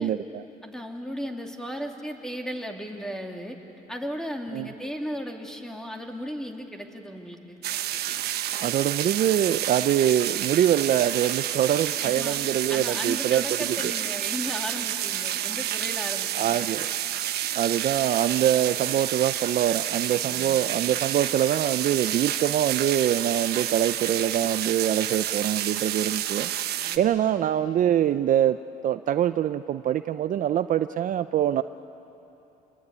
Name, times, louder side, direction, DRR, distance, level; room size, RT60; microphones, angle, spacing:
voice 1, 0.0-0.4 4.5-4.7 8.6-13.9 16.4-16.9 17.5-28.6 28.8-31.6, right 11 dB, 50° right, 12 dB, 0.6 m, -24 dB
voice 2, 0.6-3.6 3.9-7.6 12.0-12.4 12.7-16.7 26.8-27.1, equal, 5° left, 2 dB, 2.6 m, -35 dB
sound 1, 7.6-27.0, right 11 dB, 70° right, 1.2 m, -29 dB
27.0 x 21.0 x 9.5 m, 3.0 s
cardioid pair, 110°, 17 cm